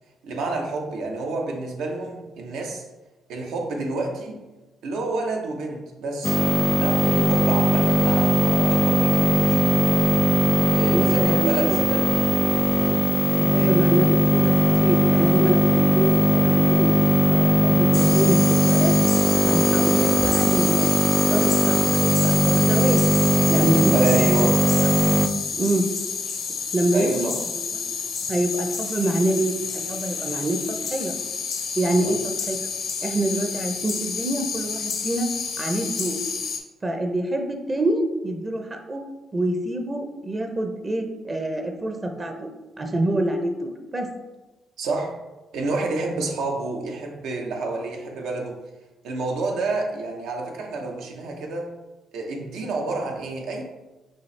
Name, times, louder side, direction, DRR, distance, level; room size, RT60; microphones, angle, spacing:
voice 1, 0.2-2.8 3.3-4.4 4.8-6.5 6.7-9.8 10.7-12.1 13.5-13.8 23.9-24.6 26.9-27.4 32.0-32.1 44.8-45.2 45.5-48.6 49.0-51.7 52.1-53.6, right 3 dB, 85° right, 1 dB, 0.8 m, -29 dB
sound 1, 6.2-25.3, equal, 15° left, 0.3 m, -19 dB
voice 2, 10.9-11.8 13.4-16.9 17.3-18.9 19.3-23.0 23.5-24.5 24.8-25.2 25.6-25.8 26.7-27.8 28.3-31.1 31.8-32.7 33.0-35.3 35.6-36.2 36.8-39.0 39.3-42.5 42.8-44.1, right 1 dB, 25° right, 4 dB, 0.6 m, -26 dB
sound 2, 17.9-36.6, left 5 dB, 65° left, 0.7 m, -30 dB
5.4 x 2.8 x 3.2 m, 1.1 s
cardioid pair, 90°, 0 cm